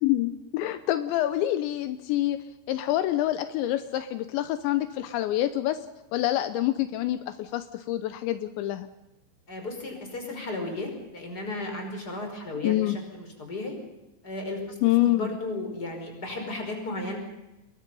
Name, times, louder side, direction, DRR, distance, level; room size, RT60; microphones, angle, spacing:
voice 1, 0.0-5.8 6.1-8.9 12.6-13.0 14.8-15.3, left 14 dB, 80° left, 10 dB, 3.1 m, -26 dB
voice 2, 9.5-13.8 14.2-14.6 15.0-17.2, left 2 dB, 20° left, 4 dB, 5.4 m, -34 dB
28.5 x 22.0 x 5.5 m, 0.98 s
omnidirectional pair, 5.2 m